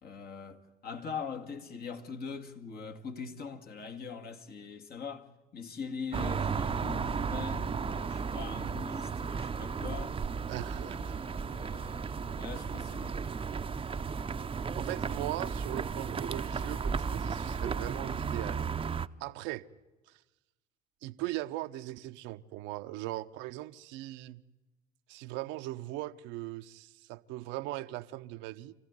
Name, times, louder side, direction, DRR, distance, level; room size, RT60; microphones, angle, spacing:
voice 1, 0.0-10.2 10.8-13.4, left 5 dB, 50° left, 2.0 m, -42 dB
sound 1, 6.1-19.1, right 5 dB, 25° right, 0.7 m, -34 dB
voice 2, 10.5-11.2 14.7-18.7 19.2-19.7 21.0-24.4 25.1-28.7, right 17 dB, 70° right, 0.7 m, -39 dB
26.0 x 16.0 x 9.6 m
hypercardioid pair, 65°, 20 cm